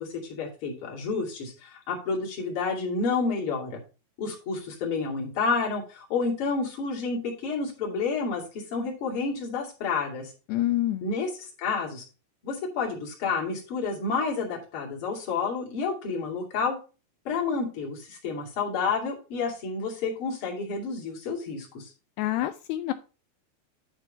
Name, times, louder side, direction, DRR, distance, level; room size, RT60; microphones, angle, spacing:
voice 1, 0.0-3.8 4.2-10.3 11.0-12.0 12.4-16.8 17.2-21.9, left 4 dB, 35° left, -2 dB, 2.8 m, -30 dB
voice 2, 10.5-11.0 22.2-22.9, left 14 dB, 85° left, 10 dB, 2.6 m, -27 dB
10.5 x 4.4 x 5.4 m, 0.34 s
omnidirectional pair, 4.8 m